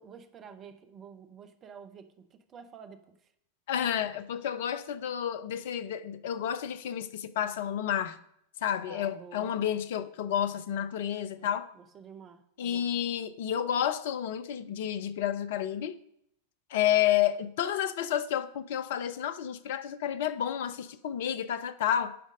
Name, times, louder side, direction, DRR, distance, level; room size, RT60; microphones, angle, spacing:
voice 1, 0.0-3.2 8.9-9.7 11.4-12.9, right 6 dB, 25° right, 0.8 m, -50 dB
voice 2, 3.7-8.2 8.6-11.7 12.6-16.0 16.7-22.2, left 10 dB, 55° left, 0.5 m, -30 dB
10.0 x 5.2 x 5.2 m
figure-of-eight pair, 90°, 0 cm